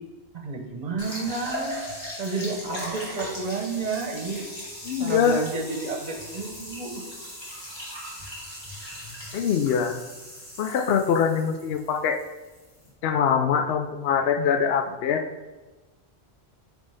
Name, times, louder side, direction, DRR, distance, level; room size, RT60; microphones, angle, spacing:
voice 1, 0.3-1.8 2.2-4.5 5.0-7.0, right 4 dB, 40° right, 2 dB, 0.9 m, -31 dB
sound 1, 1.0-12.9, equal, 25° left, 1.9 m, -39 dB
voice 2, 4.8-5.4 9.3-10.0 10.6-12.2 13.0-15.2, left 7 dB, 70° left, 8 dB, 0.8 m, -23 dB
9.1 x 3.5 x 3.3 m, 1.2 s
omnidirectional pair, 1.1 m